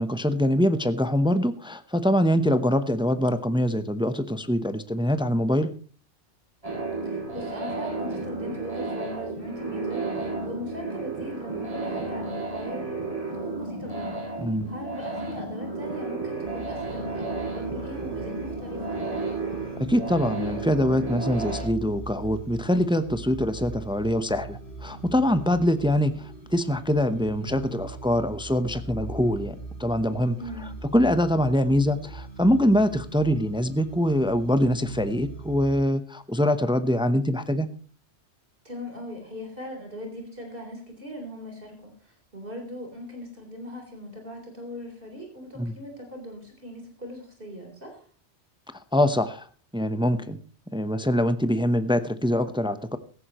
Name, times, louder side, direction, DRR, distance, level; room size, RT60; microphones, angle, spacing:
voice 1, 0.0-5.7 14.4-14.7 19.8-30.4 30.8-37.7 45.6-45.7 48.9-49.5 49.7-50.4 50.7-53.0, equal, 5° right, 11 dB, 0.8 m, -24 dB
sound 1, 6.6-21.6, right 3 dB, 30° right, 6.9 m, -32 dB
voice 2, 7.0-14.3 14.7-19.0 30.4-30.8 38.6-48.0, left 1 dB, 50° right, 2 dB, 4.2 m, -39 dB
sound 2, 16.4-35.8, right 3 dB, 55° left, 3.2 m, -41 dB
17.0 x 14.5 x 3.0 m, 0.39 s
omnidirectional pair, 1.2 m